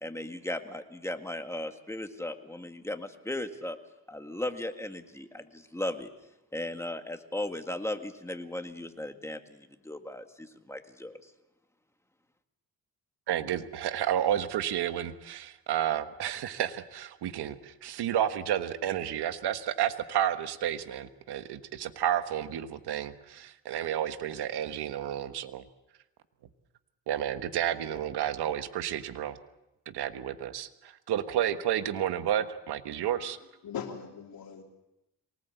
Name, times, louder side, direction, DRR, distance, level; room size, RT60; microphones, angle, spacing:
voice 1, 0.0-3.8 4.1-6.1 6.5-11.3, left 1 dB, 5° left, 6 dB, 1.8 m, -37 dB
voice 2, 13.3-25.6 27.1-29.4 29.9-30.7 31.1-33.4, right 10 dB, 80° right, 10 dB, 1.4 m, -31 dB
voice 3, 32.9-34.6, left 7 dB, 65° left, 2 dB, 3.3 m, -41 dB
24.0 x 19.0 x 8.1 m, 0.92 s
cardioid pair, 110°, 39 cm